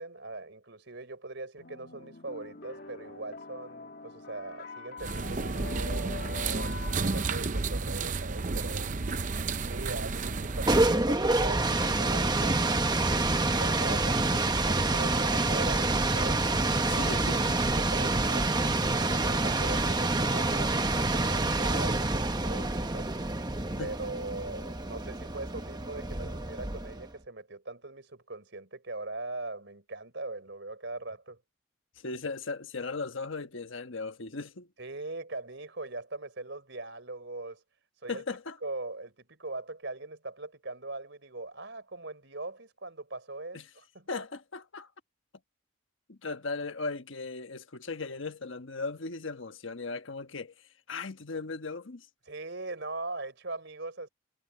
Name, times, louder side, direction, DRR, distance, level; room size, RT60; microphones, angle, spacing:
voice 1, 0.0-8.9 9.7-13.2 13.5-17.1 17.8-23.1 23.8-31.4 34.8-37.6 38.0-38.2 38.6-44.1 52.3-54.1, right 2 dB, 60° right, 5.0 m, -41 dB
sound 1, 1.6-8.6, left 3 dB, 50° left, 2.0 m, -46 dB
sound 2, 5.0-11.0, right 4 dB, 40° right, 0.7 m, -32 dB
sound 3, 10.4-27.1, right 2 dB, 20° right, 1.1 m, -27 dB
voice 2, 16.9-17.6 23.8-23.9 32.0-34.7 38.1-38.6 43.5-43.7 44.1-44.9 46.1-52.1, left 3 dB, 70° left, 1.3 m, -37 dB
head